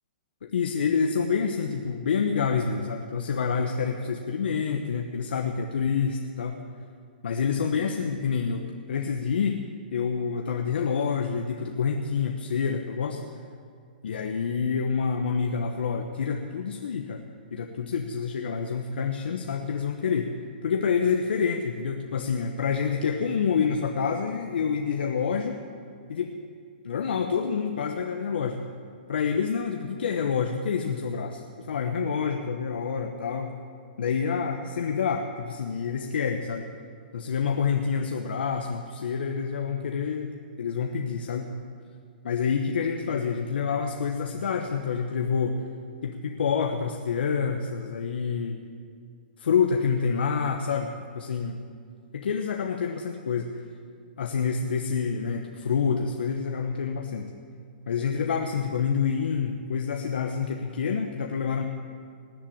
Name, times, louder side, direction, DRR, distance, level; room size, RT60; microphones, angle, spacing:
voice 1, 0.4-6.6 7.2-9.6 9.9-13.2 14.0-17.2 17.5-20.3 20.6-25.6 26.1-26.3 26.8-28.6 29.1-33.5 34.0-36.6 37.1-41.5 42.2-45.7 46.0-48.7 49.4-51.7 52.1-53.5 54.2-57.3 57.9-61.6, left 6 dB, 80° left, 4 dB, 1.1 m, -27 dB
19.5 x 7.6 x 8.7 m, 2.2 s
hypercardioid pair, 125°, 5 cm